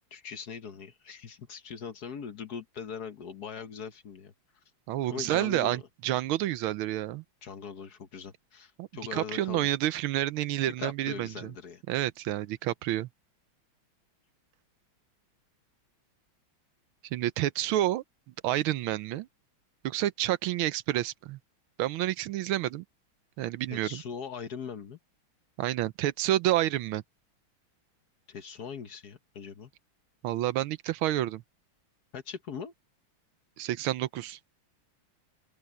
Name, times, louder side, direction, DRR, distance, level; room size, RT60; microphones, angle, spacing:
voice 1, 0.1-4.3 5.1-5.9 7.4-9.7 10.7-11.8 23.7-25.0 28.3-29.7 32.1-32.7, left 6 dB, 55° left, 1.5 m, -41 dB
voice 2, 4.9-7.2 8.8-11.5 11.9-13.1 17.1-18.0 18.4-19.3 19.8-21.4 21.8-22.8 23.4-24.0 25.6-27.0 30.2-31.4 33.6-34.4, right 14 dB, 80° right, 1.5 m, -29 dB
open air
omnidirectional pair, 2.3 m